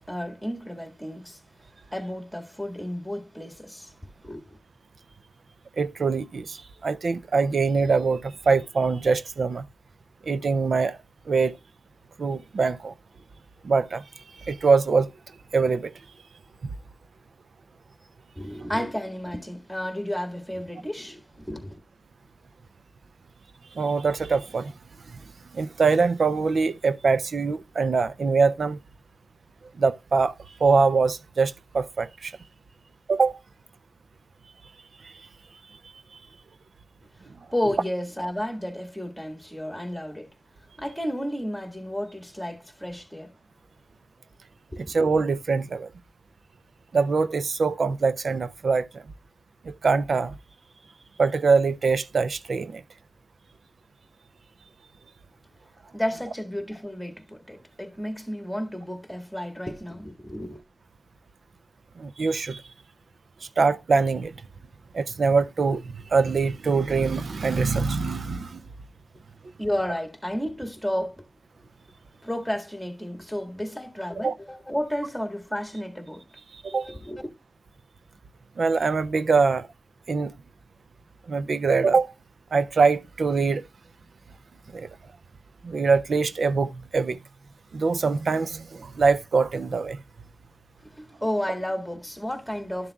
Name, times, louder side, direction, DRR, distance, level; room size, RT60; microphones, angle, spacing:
voice 1, 0.1-1.4 1.9-4.6 18.4-21.8 37.5-40.3 40.8-43.4 44.7-45.1 55.9-60.6 69.6-71.3 72.2-76.3 76.7-77.3 90.8-92.9, equal, ahead, 1.8 m, -32 dB
voice 2, 5.8-9.7 10.2-11.0 11.3-11.6 12.2-12.9 13.6-14.0 14.4-15.1 15.5-15.9 23.8-24.7 25.1-25.2 25.5-28.8 29.8-30.3 30.6-32.4 33.1-33.4 35.0-35.1 44.9-45.9 46.9-49.0 49.6-50.3 51.2-52.8 62.0-62.6 63.6-64.3 64.9-68.6 74.2-74.3 76.5-76.9 78.6-79.7 80.1-80.3 81.3-82.1 82.5-83.6 84.7-84.9 85.6-87.2 87.7-90.0, right 4 dB, 75° right, 0.4 m, -23 dB
12.0 x 7.1 x 2.3 m
wide cardioid pair, 90°, 0 cm